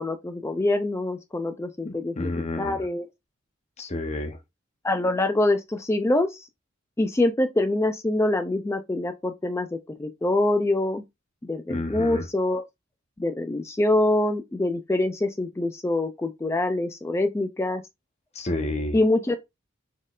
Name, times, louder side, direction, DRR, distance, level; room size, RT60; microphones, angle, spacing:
voice 1, 0.0-3.1 4.8-6.5 7.0-11.0 11.4-12.6 13.2-17.8 18.9-19.3, left 2 dB, 15° left, 0.4 m, -25 dB
voice 2, 1.8-2.8 3.8-4.4 11.7-12.2 18.3-19.0, left 2 dB, 35° left, 0.8 m, -30 dB
4.2 x 3.6 x 2.4 m
head